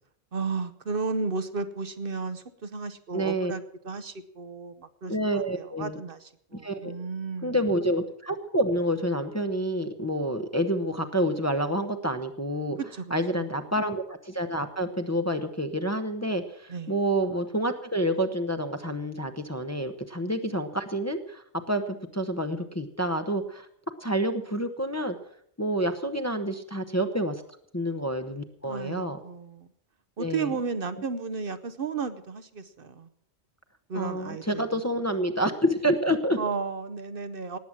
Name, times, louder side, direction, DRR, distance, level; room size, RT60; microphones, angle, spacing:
voice 1, 0.3-7.6 12.8-13.0 13.3-13.5 16.7-16.9 28.6-29.7 30.2-33.1 33.9-34.8 36.4-37.6, right 4 dB, 55° right, 11 dB, 1.0 m, -34 dB
voice 2, 3.1-3.5 5.1-6.0 6.5-6.9 7.4-12.8 13.1-23.7 24.0-25.2 25.6-27.3 27.7-29.2 30.2-30.5 33.9-36.4, equal, 15° left, 5 dB, 0.9 m, -28 dB
19.0 x 7.9 x 7.4 m, 0.69 s
omnidirectional pair, 1.1 m